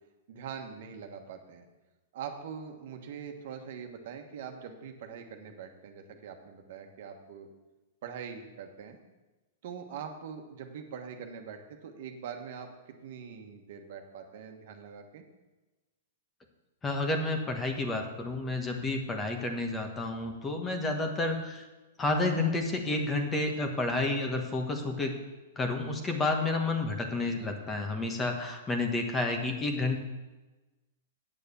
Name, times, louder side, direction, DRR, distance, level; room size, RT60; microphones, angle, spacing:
voice 1, 0.3-1.7 2.1-7.5 8.0-9.0 9.6-15.2, right 7 dB, 60° right, 4 dB, 1.3 m, -43 dB
voice 2, 16.8-21.6 22.0-25.1 25.6-30.0, left 2 dB, 15° left, 4 dB, 1.3 m, -30 dB
8.8 x 6.8 x 6.9 m, 1.1 s
hypercardioid pair, 140°, 0 cm